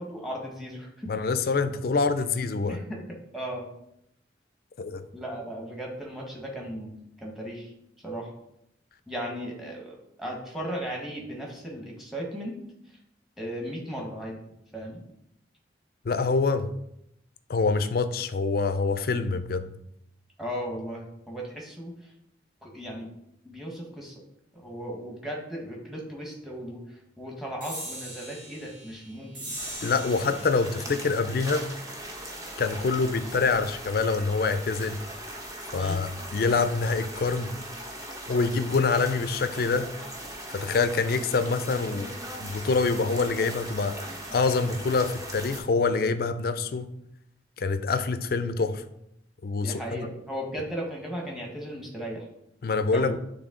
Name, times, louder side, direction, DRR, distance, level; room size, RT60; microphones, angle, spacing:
voice 1, 0.0-1.1 2.7-3.7 5.1-6.9 7.2-7.7 8.0-8.3 9.1-12.6 13.4-14.4 14.7-15.0 20.4-22.1 22.6-23.1 23.4-24.1 24.5-29.6 30.0-30.1 30.9-31.0 35.8-36.0 49.6-52.3 52.9-53.1, equal, ahead, -1 dB, 1.2 m, -36 dB
voice 2, 1.1-2.8 4.8-5.0 16.0-16.7 17.5-19.7 29.8-31.7 32.6-35.0 35.7-37.6 38.3-39.9 40.5-42.1 42.4-43.9 44.3-46.9 47.6-48.8 49.4-50.0 52.6-53.1, left 4 dB, 55° left, 10 dB, 0.4 m, -25 dB
sound 1, 27.6-34.5, right 1 dB, 45° right, 2.4 m, -43 dB
sound 2, 29.6-45.6, right 1 dB, 20° right, 0.8 m, -39 dB
8.2 x 3.3 x 3.7 m, 0.78 s
head